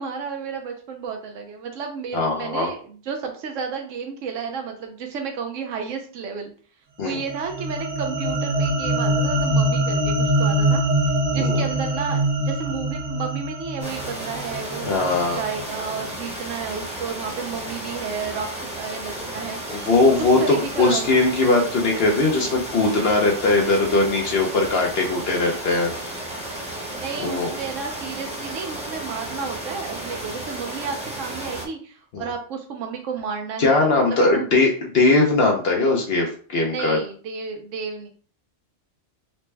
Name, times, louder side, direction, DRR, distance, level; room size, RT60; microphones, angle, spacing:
voice 1, 0.0-6.5 7.0-10.8 11.3-14.9 15.3-18.5 18.8-19.8 20.2-21.1 26.9-34.5 36.7-38.1, right 5 dB, 90° right, 3 dB, 1.0 m, -32 dB
voice 2, 2.1-2.7 7.0-7.2 11.3-11.6 14.8-15.4 19.7-25.9 27.2-27.5 32.1-32.2 33.6-34.7 34.9-37.0, left 3 dB, 60° left, 0 dB, 0.8 m, -20 dB
sound 1, 7.1-15.6, right 1 dB, 45° right, 0.6 m, -23 dB
sound 2, 13.8-31.7, right 1 dB, 5° right, 0.8 m, -33 dB
4.2 x 2.2 x 3.2 m, 0.43 s
omnidirectional pair, 1.2 m